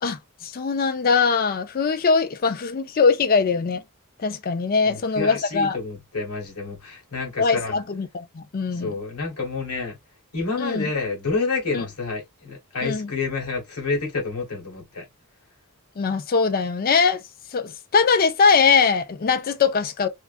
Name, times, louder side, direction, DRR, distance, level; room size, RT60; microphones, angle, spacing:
voice 1, 0.0-3.8 4.2-5.8 7.4-8.9 10.6-10.9 11.7-11.8 12.8-13.1 16.0-17.2 17.5-20.1, left 5 dB, 40° left, 0.4 m, -21 dB
voice 2, 4.8-7.8 8.7-10.0 10.3-15.0, left 4 dB, 85° left, 1.1 m, -29 dB
2.4 x 2.4 x 2.4 m
head